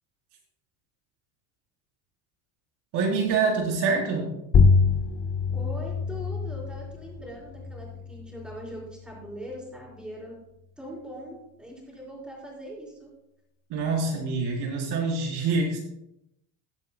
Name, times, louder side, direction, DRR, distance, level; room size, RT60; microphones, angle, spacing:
voice 1, 2.9-4.3 13.7-15.8, right 4 dB, 60° right, -1 dB, 4.1 m, -26 dB
sound 1, 4.5-9.6, left 4 dB, 30° left, 1.0 m, -25 dB
voice 2, 5.5-10.4 10.8-13.1, equal, ahead, -4 dB, 4.1 m, -41 dB
20.0 x 8.1 x 2.3 m, 0.83 s
cardioid pair, 165°, 46 cm